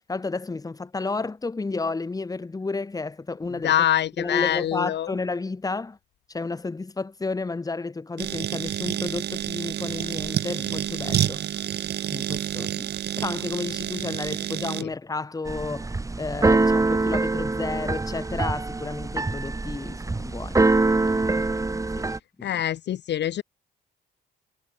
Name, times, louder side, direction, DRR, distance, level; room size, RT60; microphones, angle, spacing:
voice 1, 0.0-3.7 4.2-6.0 6.3-11.4 12.1-15.9 16.2-21.3 21.9-22.1 22.4-22.5, left 3 dB, 20° left, 1.2 m, -32 dB
voice 2, 3.5-5.1 14.8-14.9 22.4-23.4, left 11 dB, 60° left, 0.7 m, -25 dB
sound 1, 8.2-14.8, right 10 dB, 55° right, 0.8 m, -29 dB
Keyboard (musical), 15.5-22.2, right 3 dB, 15° right, 1.1 m, -24 dB
cardioid pair, 90°, 20 cm